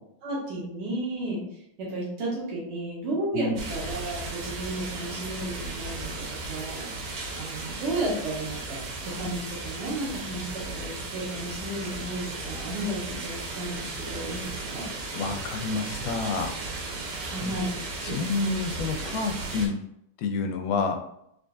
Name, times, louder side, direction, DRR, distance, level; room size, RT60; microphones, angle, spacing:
voice 1, 0.2-1.4 1.8-14.8 17.2-17.7 18.0-18.2, right 1 dB, 65° right, -5 dB, 1.6 m, -33 dB
sound 1, 3.6-19.7, right 3 dB, 85° right, 2.3 m, -35 dB
voice 2, 15.1-16.6 17.4-17.6 18.0-19.8 20.2-21.1, left 4 dB, 85° left, 5 dB, 2.1 m, -29 dB
5.0 x 2.5 x 2.3 m, 0.77 s
omnidirectional pair, 3.7 m